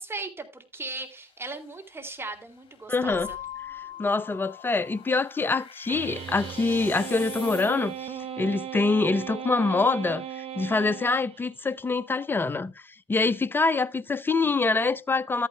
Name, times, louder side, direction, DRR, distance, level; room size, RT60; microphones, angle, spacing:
voice 1, 0.0-3.4, right 3 dB, 15° right, 2.5 m, -37 dB
sound 1, 0.8-8.2, left 8 dB, 40° left, 3.1 m, -49 dB
voice 2, 2.9-3.3 4.0-10.2 10.6-12.7 13.1-15.5, left 3 dB, 15° left, 0.6 m, -25 dB
Keyboard (musical), 3.1-5.8, left 12 dB, 70° left, 0.9 m, -41 dB
sound 2, 5.9-11.7, right 9 dB, 45° right, 1.1 m, -37 dB
13.5 x 9.0 x 2.2 m
hypercardioid pair, 65°, 14 cm